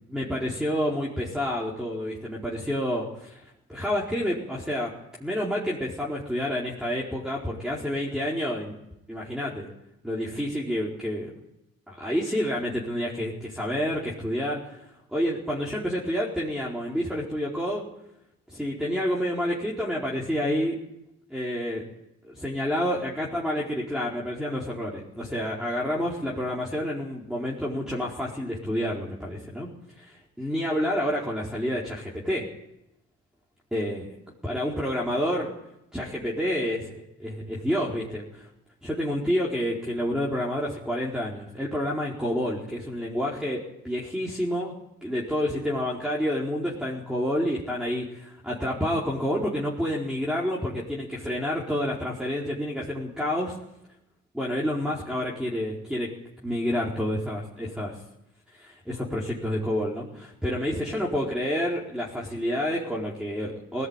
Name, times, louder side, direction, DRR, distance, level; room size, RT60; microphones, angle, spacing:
voice 1, 0.1-4.9 5.2-8.7 9.1-9.7 10.0-11.3 11.9-17.8 18.5-20.8 21.3-21.9 22.2-29.7 30.0-32.5 33.7-34.1 34.4-35.5 35.9-38.5 38.8-44.7 45.0-53.6 54.3-56.1 56.4-58.0 58.5-63.9, equal, ahead, -4 dB, 4.6 m, -29 dB
19.5 x 16.0 x 9.0 m, 0.86 s
cardioid pair, 90°, 30 cm